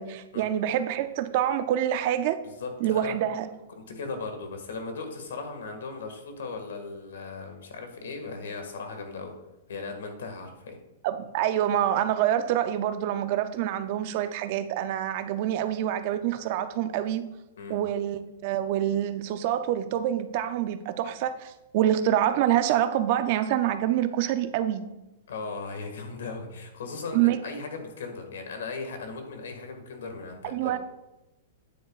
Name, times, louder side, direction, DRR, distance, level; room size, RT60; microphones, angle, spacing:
voice 1, 0.0-2.4 2.8-3.5 11.0-17.3 17.7-24.8 27.1-27.4 30.4-30.8, right 11 dB, 35° right, 11 dB, 0.4 m, -26 dB
voice 2, 2.6-3.1 3.7-9.3 9.7-10.8 17.6-17.8 25.3-30.7, left 4 dB, 85° left, 5 dB, 1.8 m, -37 dB
9.4 x 8.0 x 2.4 m, 0.98 s
supercardioid pair, 170°, 0 cm